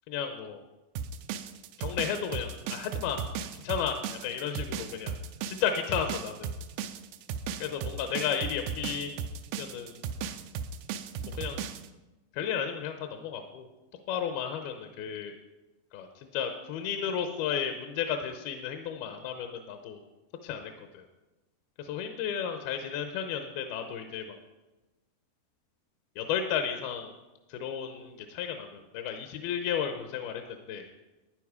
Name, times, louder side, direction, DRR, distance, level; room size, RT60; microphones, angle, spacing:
voice 1, 0.1-0.6 1.8-3.2 3.5-5.2 5.5-6.5 7.6-9.1 9.6-10.0 11.3-11.6 12.3-13.7 14.1-15.4 15.9-20.0 20.4-21.0 21.8-24.4 26.2-27.1 27.5-30.9, left 8 dB, 80° left, 6 dB, 2.5 m, -33 dB
sound 1, 1.0-11.9, right 7 dB, 80° right, 2.0 m, -36 dB
12.0 x 9.7 x 4.9 m, 1.1 s
omnidirectional pair, 4.7 m